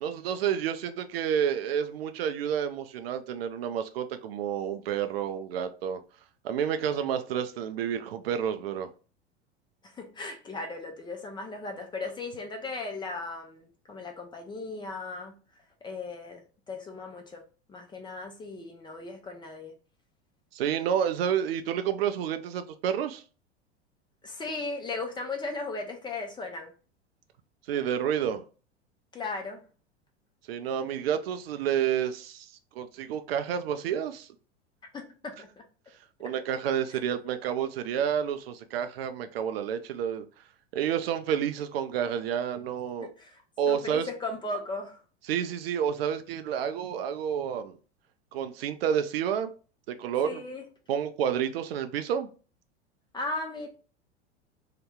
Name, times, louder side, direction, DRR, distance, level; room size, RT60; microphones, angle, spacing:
voice 1, 0.0-6.0 6.4-8.9 20.5-23.2 27.7-28.4 30.5-34.3 36.2-40.3 40.7-43.1 43.6-44.1 45.3-47.8 48.3-49.5 49.9-50.4 50.9-52.3, right 8 dB, 60° right, 0.4 m, -29 dB
voice 2, 9.8-15.3 15.8-17.4 17.7-19.7 24.2-26.7 29.1-29.6 34.9-35.6 43.0-43.4 43.7-45.0 50.2-50.6 53.1-53.7, left 3 dB, 15° left, 0.5 m, -37 dB
2.8 x 2.1 x 3.4 m
figure-of-eight pair, 85°, 34 cm